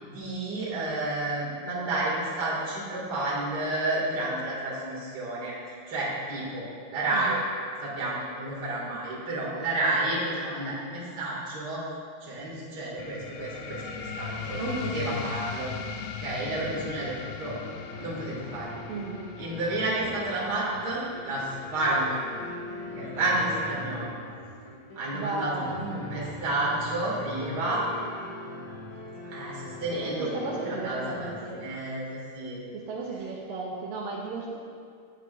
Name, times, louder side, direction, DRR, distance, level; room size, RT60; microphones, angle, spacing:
voice 1, 0.0-5.5 5.9-6.6 6.9-7.4 7.8-11.8 12.2-15.7 16.2-17.5 18.0-18.8 19.4-22.2 23.0-24.1 25.0-27.8 29.2-32.6, right 2 dB, 30° right, -6 dB, 2.0 m, -30 dB
voice 2, 7.1-7.4 18.9-19.3 25.1-25.7 30.2-31.6 32.7-34.6, right 3 dB, 80° right, -3 dB, 2.1 m, -35 dB
sound 1, 13.0-24.0, left 6 dB, 80° left, 2.5 m, -39 dB
sound 2, 16.5-31.4, left 1 dB, 55° left, 2.9 m, -41 dB
15.0 x 8.0 x 2.6 m, 2.2 s
omnidirectional pair, 4.9 m